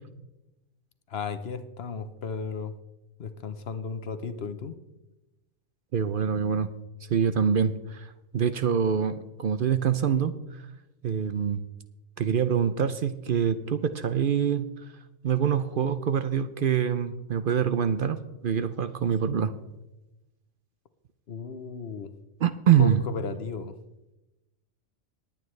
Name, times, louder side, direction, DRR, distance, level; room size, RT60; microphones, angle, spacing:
voice 1, 1.1-2.7 3.2-4.8 21.3-22.1 22.8-23.7, left 5 dB, 65° left, 11 dB, 1.1 m, -35 dB
voice 2, 5.9-6.7 7.1-8.1 8.3-10.6 11.0-11.6 12.2-14.6 15.2-19.5 22.4-23.0, right 8 dB, 55° right, 11 dB, 0.7 m, -25 dB
19.5 x 9.2 x 3.2 m, 0.98 s
omnidirectional pair, 1.2 m